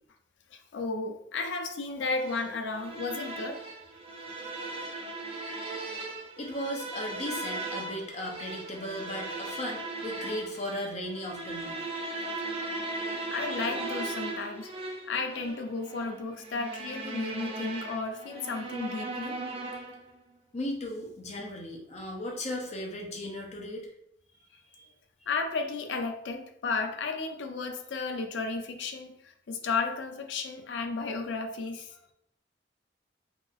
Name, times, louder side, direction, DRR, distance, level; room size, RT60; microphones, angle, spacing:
voice 1, 0.5-3.6 13.3-14.7 15.1-19.4 25.3-32.1, left 4 dB, 90° left, 6 dB, 0.4 m, -33 dB
sound 1, 2.1-20.1, right 2 dB, 35° right, 0.4 m, -38 dB
voice 2, 6.4-11.8 20.5-23.9 24.7-24.9, left 1 dB, 40° left, 0 dB, 0.6 m, -36 dB
3.0 x 2.8 x 2.4 m, 0.75 s
head